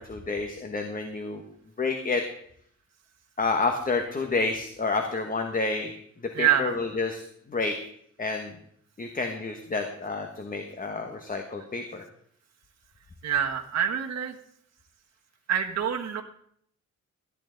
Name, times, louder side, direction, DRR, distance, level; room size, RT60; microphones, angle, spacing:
voice 1, 0.0-1.4 1.8-2.2 3.4-5.9 6.4-7.8 8.2-8.6 9.0-12.0, left 3 dB, 30° left, 4 dB, 1.1 m, -29 dB
voice 2, 6.3-6.7 13.2-14.3 15.5-16.2, right 9 dB, 60° right, 2 dB, 1.3 m, -26 dB
13.0 x 11.0 x 3.9 m, 0.66 s
wide cardioid pair, 140°, 30 cm